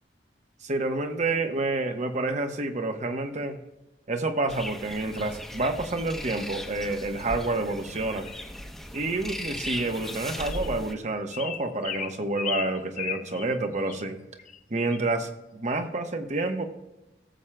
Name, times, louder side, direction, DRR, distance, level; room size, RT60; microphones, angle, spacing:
voice 1, 0.6-3.6 4.1-8.3 8.9-14.2 14.7-16.6, right 2 dB, 40° right, 6 dB, 1.0 m, -29 dB
sound 1, 4.5-10.9, equal, ahead, 0.9 m, -38 dB
sound 2, 8.3-8.5 9.4-9.5 10.0-10.2 10.5-10.7 11.3-13.6 13.9-14.0 14.4-14.6 14.9-15.1, left 9 dB, 45° left, 0.5 m, -36 dB
19.0 x 7.3 x 2.2 m, 1.0 s
head